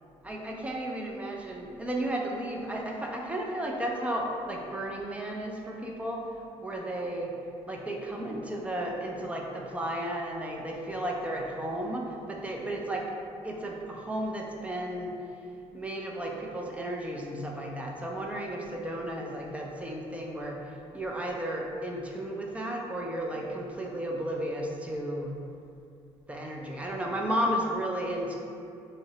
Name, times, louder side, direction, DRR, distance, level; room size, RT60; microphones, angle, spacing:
voice 1, 0.2-6.2 6.6-7.3 7.7-13.1 13.4-15.1 15.7-20.6 20.9-25.3 26.3-28.4, right 1 dB, 10° right, -1 dB, 0.4 m, -33 dB
2.6 x 2.0 x 3.8 m, 2.5 s
cardioid pair, 110°, 11 cm